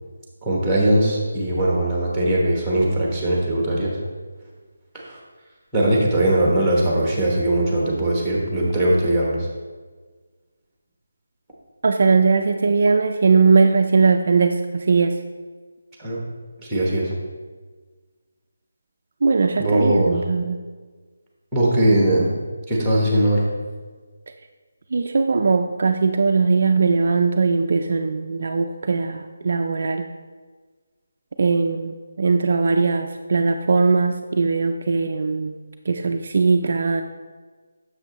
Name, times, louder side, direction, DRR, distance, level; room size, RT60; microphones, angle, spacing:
voice 1, 0.4-3.9 5.1-5.2 5.7-9.4 16.0-16.2 16.6-17.1 19.6-20.1 21.5-22.3 22.7-23.4, right 1 dB, ahead, -3 dB, 1.1 m, -20 dB
voice 2, 11.8-15.2 19.2-20.6 24.9-30.1 31.4-35.6 35.9-37.0, right 4 dB, 45° right, 5 dB, 0.3 m, -19 dB
7.4 x 6.7 x 3.0 m, 1.4 s
figure-of-eight pair, 175°, 0 cm